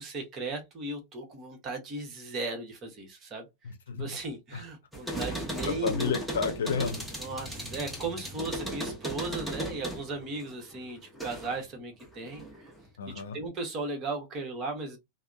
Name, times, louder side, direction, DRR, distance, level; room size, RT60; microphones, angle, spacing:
voice 1, 0.0-3.5 3.9-6.2 7.2-12.7 13.3-15.0, right 3 dB, 30° right, 1.1 m, -36 dB
voice 2, 3.6-4.1 4.5-4.6 5.3-5.4 5.6-7.1 13.0-13.4, left 5 dB, 65° left, 0.7 m, -31 dB
sound 1, 4.9-11.6 12.0-12.8, right 1 dB, ahead, 1.0 m, -37 dB
3.3 x 2.0 x 2.5 m
figure-of-eight pair, 90°, 0 cm